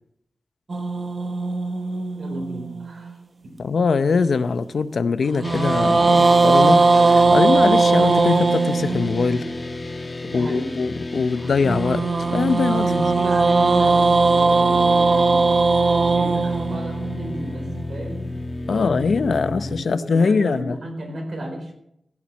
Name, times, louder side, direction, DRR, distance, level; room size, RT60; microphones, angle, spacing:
sound 1, 0.7-3.1 5.3-9.5 11.6-17.8, right 3 dB, 50° right, 1.0 m, -19 dB
voice 1, 2.2-3.6 10.3-10.8 12.6-21.7, right 1 dB, 70° right, 3 dB, 4.2 m, -34 dB
voice 2, 3.6-9.5 10.3-12.1 12.3-12.9 18.7-20.8, left 4 dB, 85° left, 13 dB, 0.7 m, -22 dB
sound 2, 5.4-19.8, left 2 dB, 35° left, 1.2 m, -32 dB
16.0 x 7.4 x 7.2 m, 0.76 s
wide cardioid pair, 115°, 0 cm